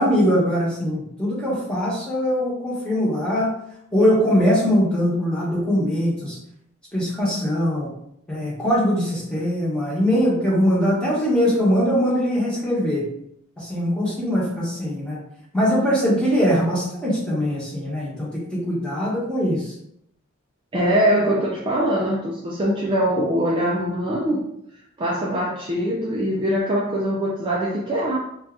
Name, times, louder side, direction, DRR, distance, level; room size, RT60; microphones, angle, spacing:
voice 1, 0.0-3.5 3.9-6.4 6.9-7.9 8.3-13.1 13.6-15.2 15.5-19.7, equal, 5° left, -7 dB, 1.0 m, -21 dB
voice 2, 20.7-24.5 25.0-28.2, equal, 25° right, -4 dB, 0.3 m, -22 dB
2.6 x 2.3 x 3.4 m, 0.74 s
head